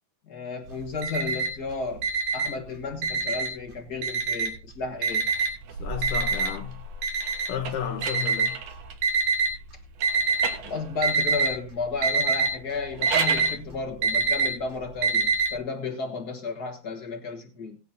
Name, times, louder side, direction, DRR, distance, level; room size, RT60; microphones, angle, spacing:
voice 1, 0.3-2.1 2.3-5.2 10.6-17.8, left 4 dB, 45° left, 1.4 m, -33 dB
Alarm, 0.7-1.6 2.0-3.6 4.0-4.7 5.0-9.5 10.0-10.6 10.9-11.5 11.8-15.5, right 4 dB, 80° right, 3.8 m, -25 dB
sound 1, 5.0-9.1 9.9-11.3 12.7-13.6, right 7 dB, 65° right, 2.2 m, -37 dB
voice 2, 5.8-6.8 7.5-8.6, left 8 dB, 90° left, 2.7 m, -32 dB
18.0 x 10.0 x 2.7 m
omnidirectional pair, 3.5 m